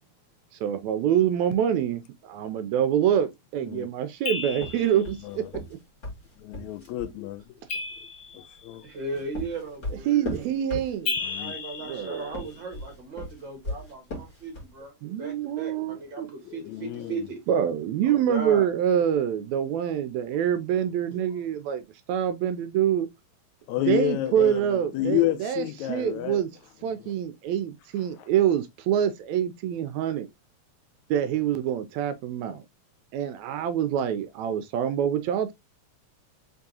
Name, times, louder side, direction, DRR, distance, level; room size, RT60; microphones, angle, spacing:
voice 1, 0.6-5.4 10.1-11.2 11.9-12.3 15.0-16.3 17.5-23.1 23.9-26.5 26.8-30.3 31.1-32.6 33.1-35.5, right 9 dB, 80° right, 1.8 m, -26 dB
sound 1, 4.2-5.1 7.7-8.7 11.1-12.7, left 4 dB, 60° left, 1.2 m, -34 dB
sound 2, 4.5-7.2 8.9-11.3 12.2-14.8, left 1 dB, 35° left, 2.5 m, -37 dB
voice 2, 6.4-7.5 8.6-8.8 11.2-11.6 16.5-17.3 23.7-26.4 27.0-27.1, left 13 dB, 80° left, 1.8 m, -29 dB
voice 3, 8.8-10.5 11.4-14.9 15.2-17.4 18.0-18.7, right 3 dB, 45° right, 1.8 m, -36 dB
5.2 x 3.6 x 2.8 m
omnidirectional pair, 3.4 m